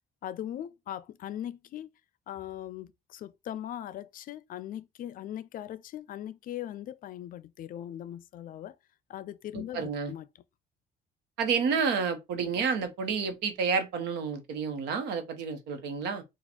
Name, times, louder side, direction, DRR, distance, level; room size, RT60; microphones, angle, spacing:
voice 1, 0.2-1.9 2.3-8.7 9.1-10.3, left 11 dB, 55° left, 0.5 m, -40 dB
voice 2, 9.5-10.1 11.4-16.2, right 5 dB, 90° right, 1.0 m, -30 dB
4.2 x 2.4 x 4.3 m
cardioid pair, 110°, 17 cm